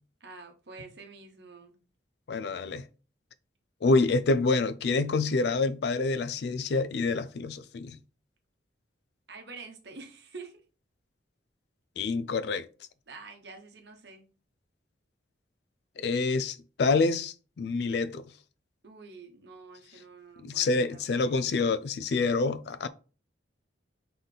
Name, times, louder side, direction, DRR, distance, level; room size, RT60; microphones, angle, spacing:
voice 1, 0.2-1.7 9.3-10.6 13.1-14.3 18.8-21.5, right 4 dB, 65° right, 1.0 m, -47 dB
voice 2, 2.3-2.8 3.8-8.0 12.0-12.7 16.0-18.2 20.4-22.9, left 3 dB, 60° left, 0.3 m, -27 dB
4.1 x 3.9 x 3.2 m
head